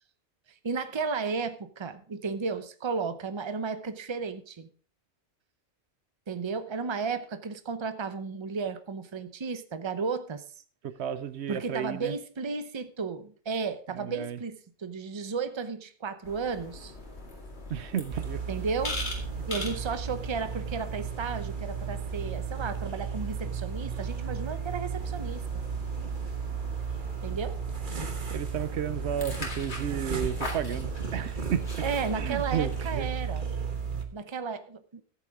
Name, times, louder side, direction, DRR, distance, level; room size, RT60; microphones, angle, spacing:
voice 1, 0.6-4.7 6.3-10.4 11.5-16.9 18.5-19.0 19.5-25.6 27.2-27.6 31.8-33.5 34.1-35.0, right 5 dB, 30° right, 0.7 m, -33 dB
voice 2, 10.8-12.1 14.0-14.4 17.7-18.4 28.3-31.6 32.2-33.1, right 9 dB, 80° right, 1.0 m, -32 dB
sound 1, 16.2-33.0, left 2 dB, 70° left, 2.5 m, -42 dB
sound 2, 18.1-34.0, right 6 dB, 50° right, 1.4 m, -34 dB
14.0 x 8.2 x 3.6 m
omnidirectional pair, 1.1 m